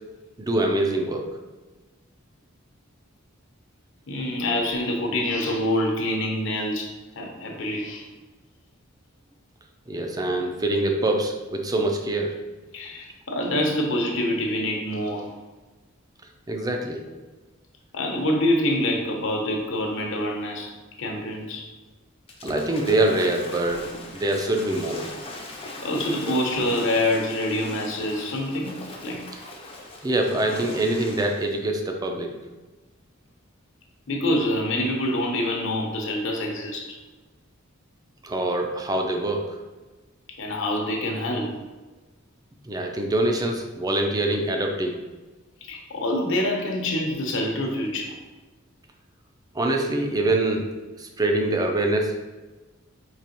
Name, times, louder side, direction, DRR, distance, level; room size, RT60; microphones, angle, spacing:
voice 1, 0.4-1.3 9.9-12.4 16.5-17.0 22.4-25.1 26.3-26.4 30.0-32.3 38.2-39.6 42.7-45.0 49.5-50.7 51.0-52.2, right 2 dB, 20° right, 3 dB, 0.4 m, -24 dB
voice 2, 4.1-6.9 7.2-8.1 12.7-15.3 17.9-20.7 21.0-21.7 25.8-28.7 29.0-29.2 34.1-37.0 40.4-41.6 45.6-48.2, left 1 dB, 65° left, 1 dB, 0.8 m, -26 dB
Waves surf / Splash splatter, 22.3-31.6, left 2 dB, 30° left, 0.5 m, -40 dB
4.7 x 2.9 x 2.9 m, 1.2 s
head